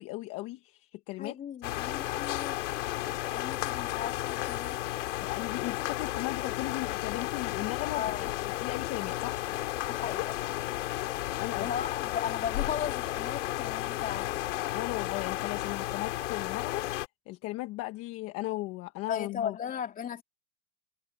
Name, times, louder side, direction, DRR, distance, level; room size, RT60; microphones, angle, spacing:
voice 1, 0.0-1.4 5.2-8.3 8.6-9.4 11.4-11.7 14.7-16.9 17.3-19.6, left 19 dB, 40° left, 1.3 m, -36 dB
voice 2, 1.2-2.6 3.3-4.8 7.9-8.3 9.9-10.4 11.2-14.3 19.1-20.2, left 8 dB, 25° left, 3.3 m, -36 dB
sound 1, 1.6-17.1, left 16 dB, 85° left, 2.7 m, -33 dB
supercardioid pair, 150°, 36 cm